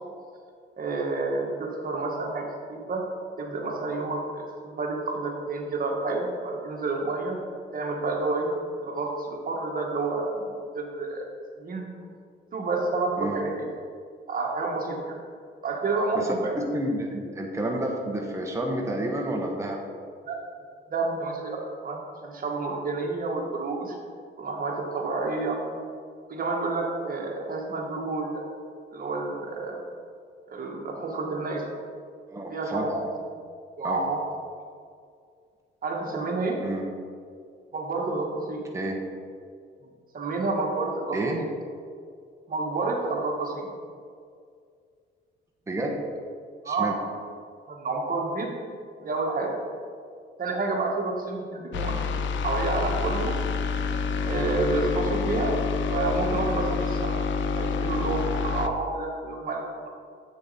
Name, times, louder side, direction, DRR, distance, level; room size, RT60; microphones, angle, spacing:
voice 1, 0.8-3.0 3.4-7.4 7.7-8.5 8.8-11.3 11.6-11.9 12.5-13.7 14.3-15.2 15.6-16.6 20.3-20.4 20.9-24.0 24.4-25.6 26.3-28.4 28.9-29.8 30.5-31.7 32.5-32.9 33.8-34.2 35.8-36.6 37.7-38.6 40.1-41.2 42.5-43.6 46.6-46.9 47.7-48.5 49.0-49.5 50.4-53.3 54.2-55.5 55.9-57.3 57.6-59.9, right 3 dB, 45° right, 0 dB, 1.6 m, -29 dB
voice 2, 16.7-19.8 32.3-33.1 33.8-34.0 36.6-36.8 38.7-39.0 41.1-41.4 45.7-46.0 46.6-47.0, right 1 dB, 15° right, 0 dB, 1.0 m, -30 dB
sound 1, 51.7-58.7, left 5 dB, 70° left, 0.6 m, -28 dB
7.8 x 6.4 x 4.2 m, 2.2 s
cardioid pair, 90°, 20 cm